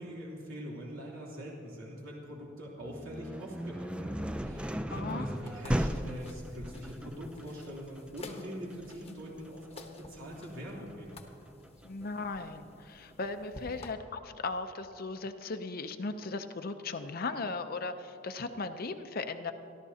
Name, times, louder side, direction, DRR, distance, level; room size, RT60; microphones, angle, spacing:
voice 1, 0.0-11.2, equal, 90° right, -5 dB, 3.2 m, -43 dB
sound 1, 2.8-12.6, equal, 5° right, 0.4 m, -37 dB
voice 2, 4.9-5.2 11.8-19.5, left 3 dB, 50° left, 8 dB, 0.6 m, -37 dB
sound 2, 5.5-13.9, left 2 dB, 30° left, 1.0 m, -52 dB
27.5 x 12.0 x 2.8 m, 2.8 s
head